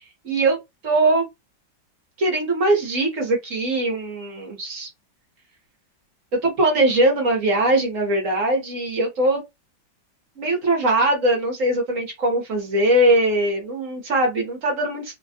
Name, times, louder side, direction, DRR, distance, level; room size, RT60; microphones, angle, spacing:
voice 1, 0.2-0.6 0.8-1.3 2.2-4.9 6.4-9.4 10.4-15.1, right 1 dB, 50° right, 1.1 m, -21 dB
3.3 x 2.2 x 2.6 m
omnidirectional pair, 2.0 m